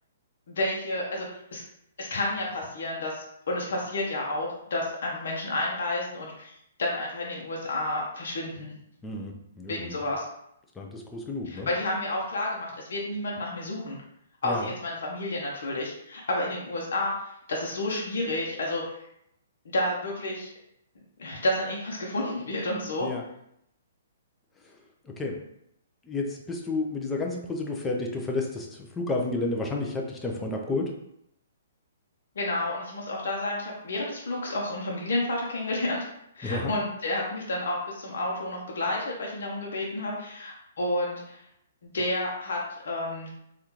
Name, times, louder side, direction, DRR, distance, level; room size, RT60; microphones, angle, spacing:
voice 1, 0.5-1.6 2.0-8.7 9.7-10.2 11.4-14.0 14.4-17.1 17.5-18.8 19.6-20.5 21.2-23.1 32.4-36.0 36.3-41.4 41.8-42.6 42.8-43.3, left 1 dB, 70° left, -3 dB, 0.7 m, -30 dB
voice 2, 9.0-10.0 10.8-11.7 14.4-14.7 23.0-23.2 25.0-25.4 26.0-30.9 36.4-36.7, left 2 dB, 10° left, 0 dB, 0.5 m, -31 dB
3.4 x 2.4 x 2.9 m, 0.76 s
hypercardioid pair, 145°, 0 cm